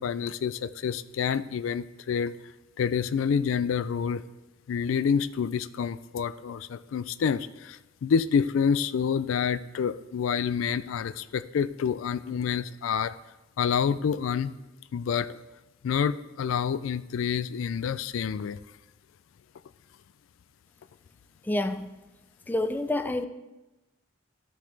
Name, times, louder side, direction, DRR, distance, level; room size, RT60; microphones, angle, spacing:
voice 1, 0.0-2.3 2.8-4.2 4.7-13.1 13.6-14.5 14.9-15.4 15.8-18.6, left 7 dB, 75° left, 14 dB, 0.3 m, -28 dB
voice 2, 21.4-21.9 22.5-23.3, left 1 dB, 10° left, 9 dB, 0.4 m, -28 dB
14.0 x 6.4 x 3.3 m, 1.0 s
head